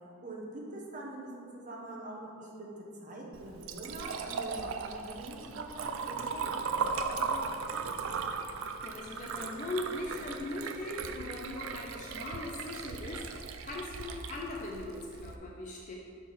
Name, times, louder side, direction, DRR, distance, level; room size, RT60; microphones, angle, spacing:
voice 1, 0.0-7.4 7.7-7.9, right 2 dB, 35° right, -2 dB, 0.9 m, -44 dB
Liquid, 3.3-15.4, right 5 dB, 75° right, 0.4 m, -37 dB
voice 2, 8.8-15.9, left 2 dB, 35° left, -2 dB, 0.5 m, -39 dB
5.7 x 4.6 x 4.1 m, 2.5 s
head